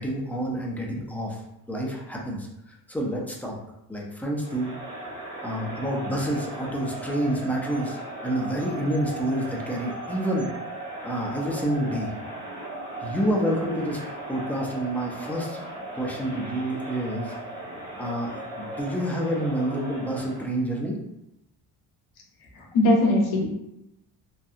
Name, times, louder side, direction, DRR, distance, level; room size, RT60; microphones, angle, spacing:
voice 1, 0.0-1.4 1.7-3.6 3.9-4.7 5.4-10.5 11.0-12.2 13.0-15.7 15.9-17.4 18.0-21.0, right 1 dB, 5° left, -3 dB, 0.3 m, -28 dB
Crowd, 4.4-20.5, right 2 dB, 40° right, 1.3 m, -37 dB
voice 2, 22.4-23.7, left 1 dB, 60° left, 0 dB, 0.8 m, -22 dB
2.7 x 2.3 x 2.4 m, 0.86 s
cardioid pair, 125°, 43 cm